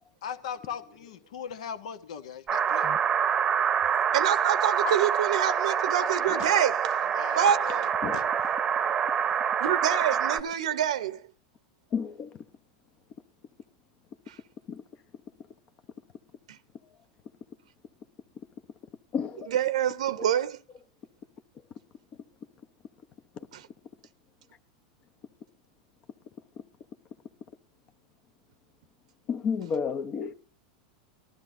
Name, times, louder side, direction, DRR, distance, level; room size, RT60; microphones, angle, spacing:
voice 1, 0.2-3.0 6.4-6.5 7.1-7.9 8.1-8.2, left 7 dB, 80° left, 1.3 m, -39 dB
sound 1, 2.5-10.4, right 8 dB, 25° right, 0.8 m, -26 dB
voice 2, 4.1-7.1 7.4-7.9 9.6-11.2 14.3-14.4 16.5-16.6 19.5-20.6 23.5-23.7, right 9 dB, 85° right, 0.7 m, -26 dB
voice 3, 11.9-12.4 14.7-14.8 19.1-19.5 29.3-30.3, left 6 dB, 35° left, 0.7 m, -31 dB
19.5 x 13.0 x 2.6 m
supercardioid pair, 125°, 3 cm